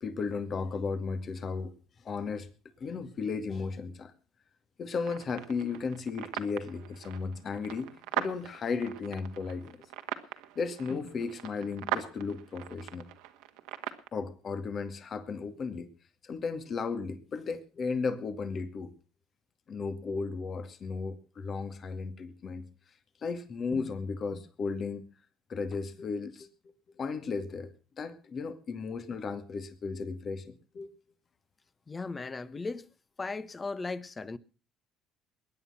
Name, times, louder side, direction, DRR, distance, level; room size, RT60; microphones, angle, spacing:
voice 1, 0.0-1.7 2.0-2.5 2.8-4.1 4.8-9.8 10.6-13.1 14.1-15.9 16.2-18.9 19.7-22.6 23.2-25.0 25.5-26.5 27.0-30.9, left 4 dB, 45° left, 2.3 m, -35 dB
sound 1, 5.0-14.1, right 14 dB, 80° right, 1.7 m, -40 dB
voice 2, 31.9-32.9 33.2-34.4, left 3 dB, 25° left, 1.3 m, -37 dB
21.5 x 9.8 x 5.8 m
supercardioid pair, 80°, 0 cm